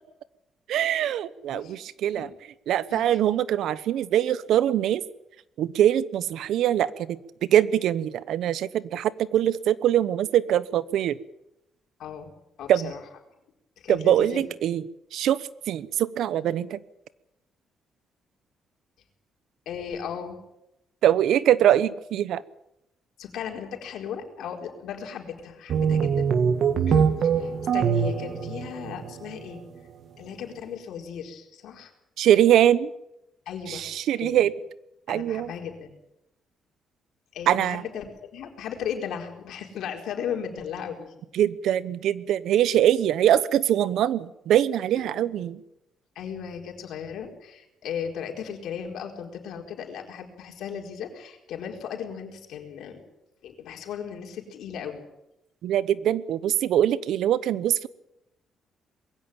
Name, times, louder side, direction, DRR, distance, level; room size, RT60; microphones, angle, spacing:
voice 1, 0.7-2.3 2.7-5.0 5.6-7.2 7.5-11.2 12.7-12.9 13.9-14.8 15.1-16.8 21.0-22.4 32.2-32.9 33.7-34.5 35.1-35.5 37.5-37.8 41.3-45.6 55.6-57.9, right 11 dB, 80° right, 17 dB, 1.0 m, -23 dB
voice 2, 12.6-13.0 13.8-14.4 19.7-20.4 23.2-26.3 26.9-29.6 30.2-31.9 33.5-33.9 34.2-34.4 35.1-35.9 37.3-41.1 45.1-45.3 46.1-53.0 53.4-55.0, left 8 dB, 80° left, 2 dB, 4.6 m, -36 dB
sound 1, 25.7-29.3, right 7 dB, 60° right, 1.7 m, -23 dB
22.0 x 16.0 x 8.9 m, 0.86 s
cardioid pair, 110°, 0 cm